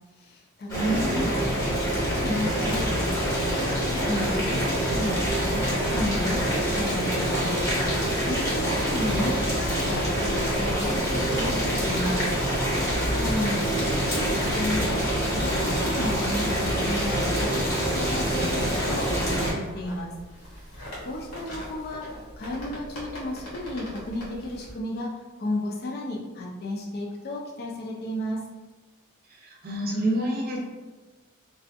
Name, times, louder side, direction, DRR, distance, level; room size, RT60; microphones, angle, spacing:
voice 1, 0.2-1.5 1.9-3.3 3.6-12.2 13.1-15.0 15.3-20.1 21.0-25.1 25.4-28.4, left 1 dB, 45° left, -2 dB, 0.4 m, -33 dB
Boiling, 0.7-19.5, equal, 15° left, 0.7 m, -25 dB
voice 2, 0.7-1.5 29.6-30.6, right 1 dB, 45° right, -1 dB, 0.5 m, -27 dB
sound 1, 19.2-24.7, equal, 85° left, 1.1 m, -41 dB
2.5 x 2.3 x 2.5 m, 1.2 s
head